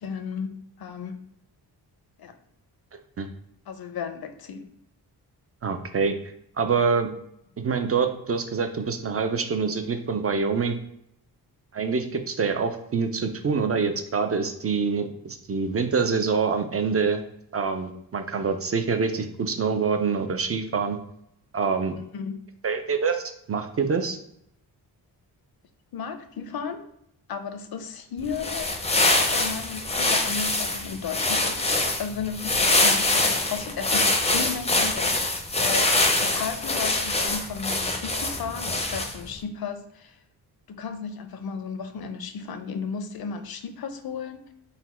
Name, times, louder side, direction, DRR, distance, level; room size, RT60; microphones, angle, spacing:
voice 1, 0.0-1.2 2.2-2.3 3.7-4.7 22.1-22.4 25.9-26.8 27.3-28.7 29.3-40.2 40.7-44.5, left 6 dB, 65° left, 9 dB, 0.6 m, -34 dB
voice 2, 5.6-6.2 6.6-7.1 7.6-10.8 11.7-17.2 17.5-21.0 21.5-22.0 22.6-24.2, right 5 dB, 35° right, 6 dB, 0.4 m, -25 dB
sound 1, 28.2-39.3, left 2 dB, 15° left, 0.5 m, -24 dB
4.0 x 2.2 x 4.2 m, 0.74 s
wide cardioid pair, 115°, 40 cm